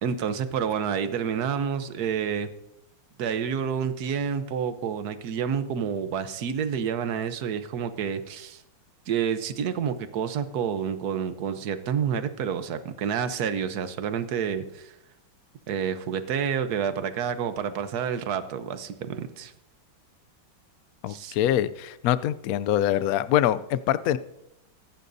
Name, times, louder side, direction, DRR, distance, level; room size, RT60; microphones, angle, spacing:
voice 1, 0.0-2.5 3.2-8.6 9.1-14.9 15.7-19.5 21.1-21.3, right 7 dB, 60° right, 10 dB, 1.3 m, -29 dB
voice 2, 21.0-24.2, left 11 dB, 85° left, 15 dB, 0.7 m, -24 dB
23.5 x 11.5 x 2.7 m, 0.88 s
omnidirectional pair, 2.1 m